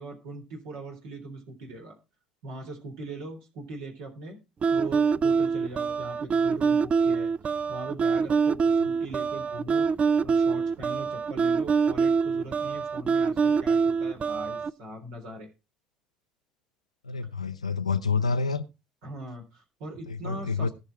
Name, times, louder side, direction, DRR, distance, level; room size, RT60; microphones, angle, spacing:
voice 1, 0.0-2.0 2.4-4.4 4.7-7.3 7.7-9.9 10.2-15.5 19.0-20.7, right 2 dB, 70° right, 3.7 m, -41 dB
sound 1, 4.6-14.7, right 5 dB, 35° right, 0.5 m, -25 dB
voice 2, 17.0-18.6 20.1-20.7, left 4 dB, 90° left, 0.6 m, -28 dB
17.5 x 6.6 x 4.6 m
figure-of-eight pair, 55°, 3 cm